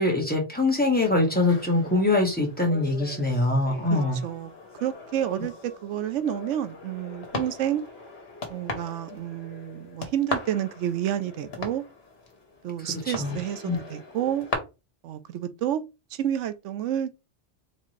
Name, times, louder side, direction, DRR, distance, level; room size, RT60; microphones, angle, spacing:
voice 1, 0.0-4.2 13.1-13.4 13.6-13.8, left 2 dB, 10° left, 1.4 m, -23 dB
sound 1, 0.9-14.5, left 4 dB, 60° left, 1.4 m, -39 dB
voice 2, 3.9-4.5 4.8-7.8 8.5-11.8 12.6-14.5 15.0-15.8 16.1-17.1, right 11 dB, 90° right, 0.9 m, -29 dB
4.1 x 3.5 x 3.2 m
omnidirectional pair, 1.2 m